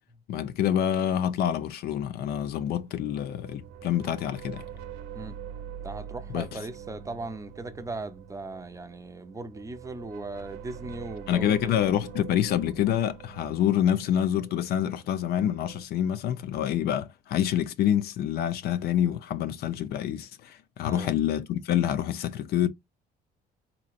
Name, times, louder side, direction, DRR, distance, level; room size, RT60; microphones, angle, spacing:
voice 1, 0.3-4.6 6.3-6.6 11.3-22.7, left 10 dB, 70° left, 0.6 m, -27 dB
sound 1, 2.4-15.8, right 9 dB, 85° right, 0.9 m, -45 dB
voice 2, 5.8-11.8 20.8-21.1, right 2 dB, 20° right, 0.6 m, -38 dB
4.0 x 3.0 x 2.4 m
cardioid pair, 110°, 17 cm